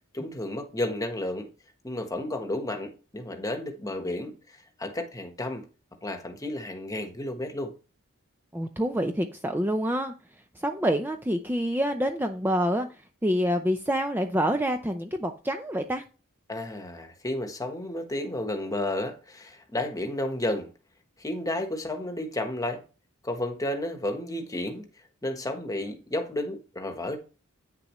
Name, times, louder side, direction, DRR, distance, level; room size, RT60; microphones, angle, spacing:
voice 1, 0.1-1.5 1.8-5.7 6.0-7.7 16.5-20.7 21.2-22.8 23.2-24.8 25.2-27.2, left 1 dB, 15° left, 1.2 m, -32 dB
voice 2, 8.5-10.1 10.6-12.9 13.2-16.0, equal, 10° right, 0.6 m, -27 dB
9.3 x 6.8 x 3.1 m
head